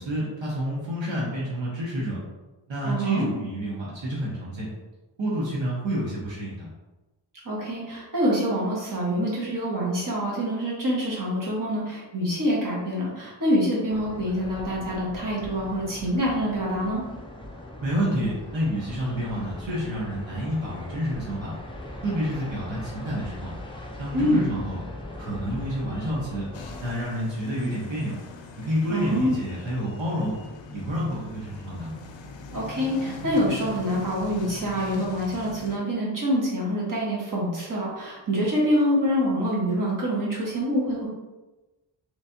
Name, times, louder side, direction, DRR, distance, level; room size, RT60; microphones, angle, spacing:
voice 1, 0.0-2.2 2.7-4.7 5.2-6.7 17.8-21.5 22.0-23.5 24.0-24.8 25.1-26.5 26.8-28.1 28.6-30.3 30.7-31.9, equal, 80° right, -6 dB, 1.0 m, -29 dB
voice 2, 2.8-3.3 7.4-17.0 24.1-24.5 28.9-29.4 32.5-41.1, equal, 45° right, -6 dB, 1.3 m, -26 dB
sound 1, 13.9-27.0, left 1 dB, 10° left, 0.5 m, -40 dB
sound 2, 26.5-35.8, left 3 dB, 80° left, 0.5 m, -41 dB
3.2 x 3.1 x 2.7 m, 1.1 s
wide cardioid pair, 75°, 45 cm